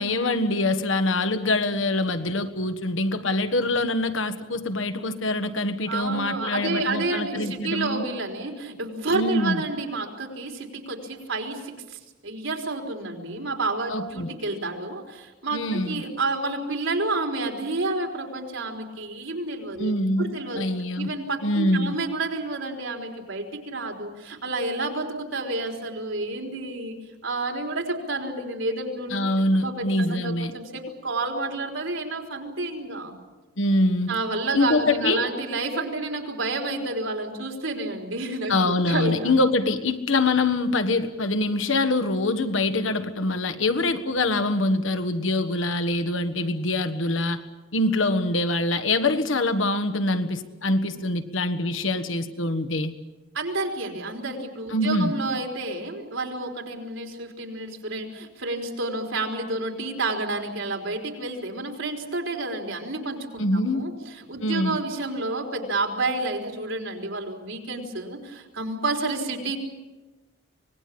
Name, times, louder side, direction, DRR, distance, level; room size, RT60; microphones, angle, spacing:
voice 1, 0.0-8.0 9.1-9.6 13.9-14.3 15.5-16.0 19.8-21.1 21.4-22.0 29.1-30.5 33.6-34.1 34.5-35.2 38.5-47.4 47.7-52.9 54.7-55.1 63.4-63.8 64.4-64.8, left 2 dB, 75° left, 8 dB, 1.6 m, -24 dB
voice 2, 5.9-20.7 21.0-27.0 27.2-29.2 29.5-33.2 34.1-39.3 53.3-69.6, right 2 dB, 75° right, 3 dB, 4.0 m, -30 dB
25.0 x 19.5 x 8.6 m, 1.2 s
head